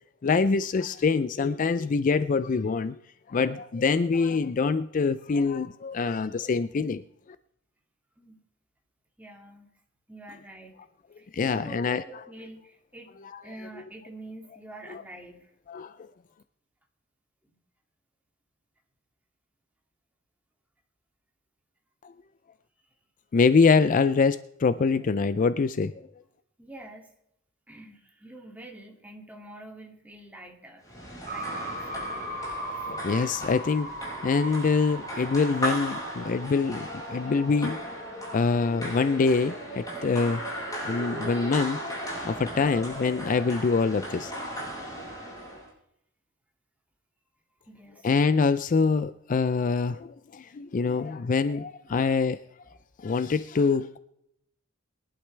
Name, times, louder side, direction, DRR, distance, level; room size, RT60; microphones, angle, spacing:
voice 1, 0.2-3.0 3.3-7.0 11.3-12.0 14.9-15.0 15.7-15.9 23.3-25.9 32.6-33.9 34.2-37.8 38.3-40.4 40.8-41.8 42.3-44.3 48.0-52.4 53.0-54.0, left 4 dB, 40° left, 13 dB, 0.4 m, -25 dB
voice 2, 9.2-9.7 10.1-10.7 11.2-13.1 13.4-15.5 26.6-27.1 27.7-30.9 31.3-32.1 32.7-32.9 47.6-48.1 50.8-51.0 51.9-52.1, right 1 dB, 10° right, 0 dB, 2.4 m, -46 dB
sound 1, 30.8-45.7, right 1 dB, 20° left, 5.7 m, -36 dB
sound 2, 31.3-37.8, right 1 dB, 45° right, 3.3 m, -38 dB
22.0 x 11.5 x 3.3 m, 0.78 s
head